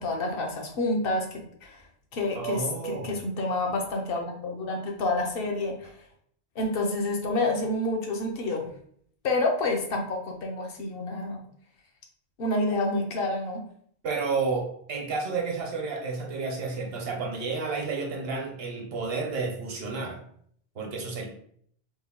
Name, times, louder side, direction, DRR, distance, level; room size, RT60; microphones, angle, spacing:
voice 1, 0.0-1.8 2.1-6.0 6.6-8.7 9.2-11.4 12.4-13.6, left 2 dB, 65° left, 1 dB, 0.9 m, -28 dB
voice 2, 2.4-3.2 14.0-20.2 20.7-21.2, right 4 dB, 70° right, 1 dB, 1.0 m, -31 dB
3.2 x 2.1 x 3.6 m, 0.64 s
omnidirectional pair, 1.0 m